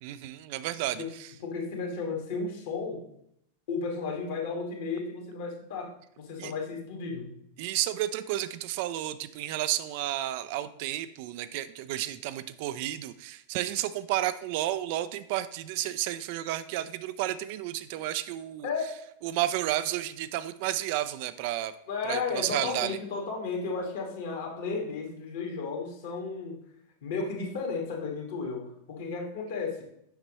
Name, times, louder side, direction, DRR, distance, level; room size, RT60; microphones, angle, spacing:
voice 1, 0.0-1.3 6.4-6.5 7.6-18.7 19.2-21.7 22.0-23.0, right 13 dB, 50° right, 13 dB, 0.3 m, -32 dB
voice 2, 1.4-3.0 3.7-7.3 18.6-18.9 21.9-26.6 27.0-29.8, left 4 dB, 55° left, 1 dB, 1.8 m, -33 dB
7.9 x 5.9 x 3.0 m, 0.73 s
figure-of-eight pair, 90°, 0 cm